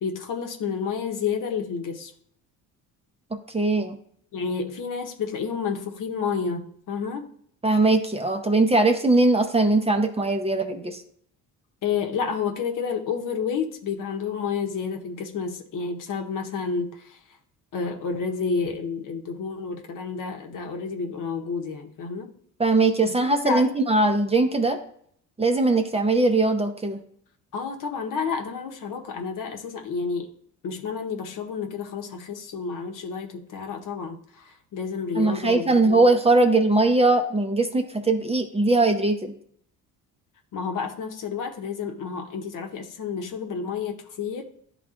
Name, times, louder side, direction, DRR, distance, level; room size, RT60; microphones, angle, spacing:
voice 1, 0.0-2.1 4.3-7.3 11.8-17.2 17.7-22.3 23.0-23.1 23.4-23.7 27.5-30.3 30.6-36.0 40.5-44.4, left 5 dB, 60° left, 3 dB, 1.0 m, -30 dB
voice 2, 3.5-4.0 7.6-11.0 22.6-24.8 25.4-27.0 35.2-39.3, right 2 dB, 15° right, 5 dB, 0.6 m, -20 dB
10.5 x 3.6 x 2.5 m, 0.64 s
cardioid pair, 95°, 36 cm